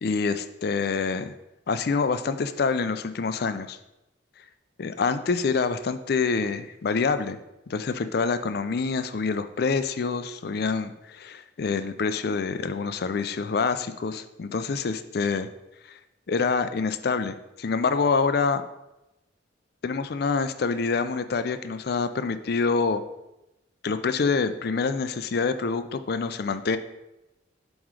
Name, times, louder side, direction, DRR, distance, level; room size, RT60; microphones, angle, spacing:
voice 1, 0.0-1.3 1.7-3.8 4.8-7.4 7.7-15.5 15.9-16.0 16.3-18.6 19.8-23.0 23.8-26.8, left 4 dB, 55° left, 11 dB, 0.4 m, -26 dB
7.4 x 3.1 x 4.8 m, 0.93 s
head